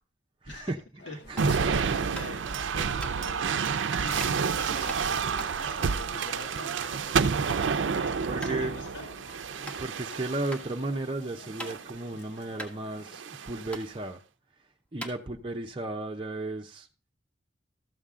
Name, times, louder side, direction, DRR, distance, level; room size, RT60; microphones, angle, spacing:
voice 1, 0.4-0.8 1.3-1.5 8.3-8.8 9.5-14.2 14.9-16.9, right 2 dB, 30° right, 0.7 m, -34 dB
sound 1, 1.0-13.2, left 2 dB, 60° left, 0.8 m, -52 dB
sound 2, 1.4-1.6 2.1-2.5 3.0-3.1 4.2-4.4 4.9-7.0 7.3-7.7 8.0-8.1 8.4-8.6 9.1-9.2 9.6-9.8 10.5-10.6 11.1-12.0 12.3-12.4 12.6-13.4 13.7-13.9 14.5-14.6 14.9-15.7, right 1 dB, 5° left, 1.5 m, -41 dB
sound 3, 1.4-10.7 11.4-12.0 13.1-13.7, right 6 dB, 85° right, 0.5 m, -29 dB
voice 2, 1.5-3.6 4.0-9.1, left 3 dB, 90° left, 1.6 m, -45 dB
13.5 x 7.1 x 3.7 m
head